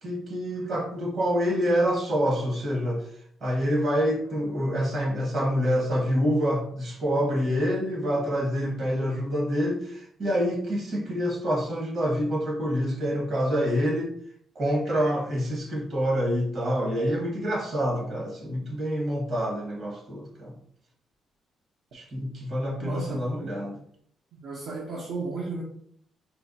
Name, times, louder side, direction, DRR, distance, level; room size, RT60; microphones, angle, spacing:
voice 1, 0.0-3.1 3.4-14.1 14.5-20.5 21.9-23.8, equal, 55° right, 1.3 m, -27 dB
voice 2, 22.8-23.8 24.3-25.6, right 3 dB, 70° right, 0.7 m, -35 dB
4.2 x 2.2 x 2.7 m
cardioid pair, 90°, 0 cm